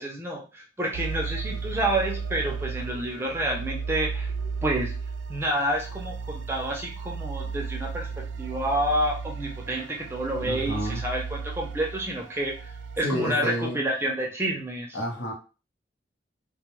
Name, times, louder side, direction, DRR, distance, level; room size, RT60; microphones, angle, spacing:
voice 1, 0.0-4.3 4.6-4.9 5.3-8.1 8.4-15.0, right 1 dB, 15° right, -1 dB, 0.5 m, -29 dB
sound 1, 0.9-13.0, right 5 dB, 80° right, 0.3 m, -34 dB
voice 2, 10.4-11.0 13.0-13.8 14.9-15.3, equal, 80° left, 0 dB, 0.8 m, -30 dB
2.2 x 2.1 x 3.0 m, 0.33 s
head